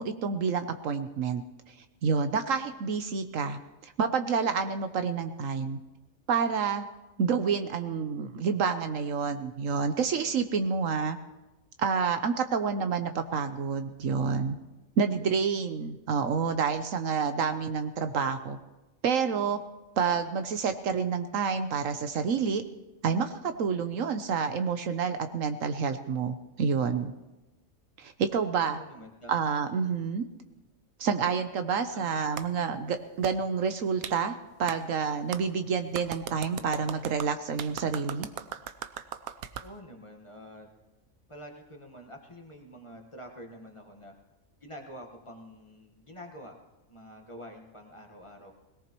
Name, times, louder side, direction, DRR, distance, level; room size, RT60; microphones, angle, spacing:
voice 1, 0.0-1.4 1.7-1.8 2.0-5.8 6.3-6.8 7.2-11.2 11.8-14.6 15.0-18.6 19.0-19.6 20.0-22.6 23.0-27.1 28.0-28.8 29.3-30.3 31.0-38.3, right 6 dB, 70° right, 8 dB, 1.1 m, -28 dB
voice 2, 28.7-29.3 30.5-30.6 31.9-32.1 39.6-40.7 41.3-44.1 44.6-46.6 46.9-48.5, equal, 20° left, 2 dB, 1.4 m, -47 dB
Clapping, 32.4-32.5 33.2-33.3 34.0-34.2 34.7-34.8 35.3-35.4 35.9-39.7, right 10 dB, 90° right, 1.1 m, -38 dB
20.5 x 18.0 x 3.0 m, 1.0 s
omnidirectional pair, 1.5 m